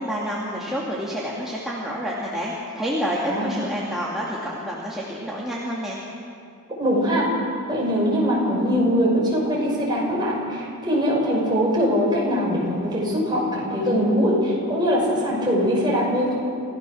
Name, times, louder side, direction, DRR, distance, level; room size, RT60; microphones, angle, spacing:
voice 1, 0.0-6.0, equal, ahead, -6 dB, 2.4 m, -28 dB
voice 2, 6.8-7.4 7.7-16.4, equal, 20° right, -4 dB, 5.9 m, -22 dB
28.0 x 16.5 x 6.4 m, 2.4 s
head